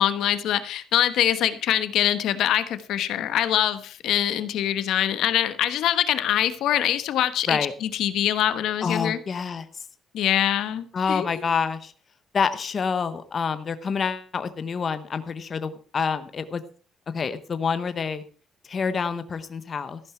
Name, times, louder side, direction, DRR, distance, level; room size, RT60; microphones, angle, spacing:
voice 1, 0.0-9.2 10.1-11.3, left 11 dB, 65° left, 13 dB, 1.2 m, -24 dB
voice 2, 8.8-9.7 10.9-11.9 12.3-16.6 17.1-18.2 18.7-20.0, left 6 dB, 30° left, 11 dB, 0.8 m, -27 dB
14.0 x 12.0 x 4.4 m, 0.40 s
cardioid pair, 170°, 0 cm